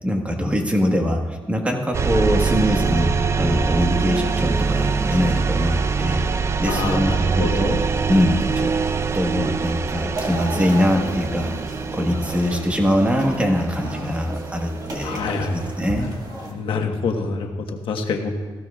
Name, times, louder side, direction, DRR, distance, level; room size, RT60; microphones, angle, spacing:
voice 1, 0.0-3.1 3.4-6.2 6.6-7.8 8.1-8.7 9.1-11.5 11.9-16.1, equal, 15° right, 2 dB, 1.5 m, -22 dB
sound 1, 1.9-15.8, right 5 dB, 30° right, 0.4 m, -24 dB
voice 2, 6.7-7.8 15.0-15.6 16.5-18.3, left 4 dB, 70° left, 4 dB, 1.3 m, -26 dB
sound 2, 10.1-16.5, right 2 dB, 45° right, 1.9 m, -34 dB
18.0 x 15.0 x 2.4 m, 1.4 s
cardioid pair, 145°, 9 cm